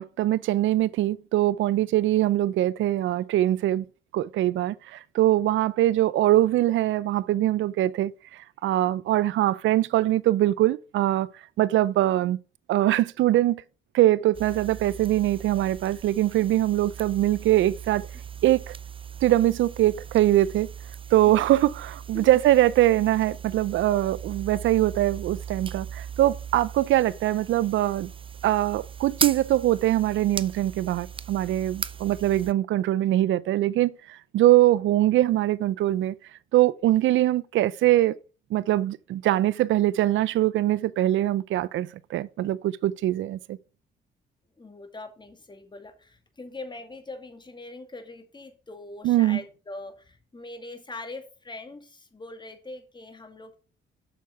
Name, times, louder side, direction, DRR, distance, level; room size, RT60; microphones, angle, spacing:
voice 1, 0.0-3.9 4.1-11.3 11.6-12.4 12.7-13.6 13.9-18.1 18.4-18.7 19.2-20.7 21.1-28.1 28.4-36.1 36.5-38.2 38.5-43.6 49.0-49.4, right 14 dB, 75° right, 0.6 m, -22 dB
sound 1, 14.3-32.5, right 7 dB, 25° right, 0.6 m, -38 dB
voice 2, 44.6-53.6, left 2 dB, 20° left, 2.3 m, -42 dB
8.0 x 6.4 x 5.7 m
cardioid pair, 90°, 20 cm